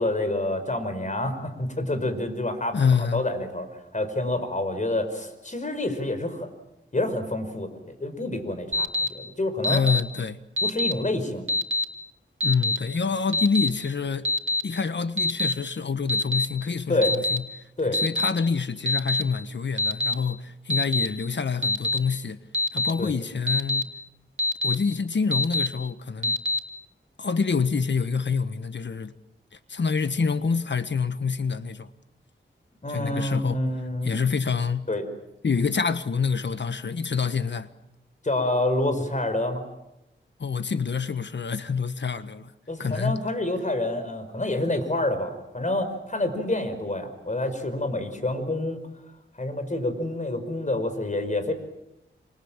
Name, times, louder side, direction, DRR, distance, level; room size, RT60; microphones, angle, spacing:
voice 1, 0.0-2.8 3.1-3.7 3.9-6.5 6.9-9.8 10.6-11.5 16.9-17.1 17.8-18.0 23.0-23.1 32.8-34.1 34.9-35.1 38.2-39.6 42.7-48.8 49.4-51.5, left 1 dB, 35° left, 5.3 m, -28 dB
voice 2, 2.7-3.3 9.7-10.4 12.4-14.3 14.6-17.4 17.9-22.4 22.7-23.9 24.6-26.4 27.2-29.1 29.7-31.9 32.9-33.6 34.0-34.9 35.4-37.7 40.4-42.5 42.8-43.2, left 5 dB, 60° left, 1.4 m, -26 dB
Alarm, 8.7-9.1 9.6-10.0 10.6-10.9 11.5-11.8 12.4-12.8 13.3-13.7 14.3-14.6 15.2-15.5 16.1-16.5 17.0-17.4 17.9-18.3 18.9-19.2 19.8-20.1 20.7-21.1 21.6-22.0 22.5-22.9 23.5-23.8 24.4-24.8 25.3-25.7 26.2-26.6, left 2 dB, 75° right, 2.8 m, -24 dB
28.0 x 26.5 x 7.4 m
cardioid pair, 65°, 21 cm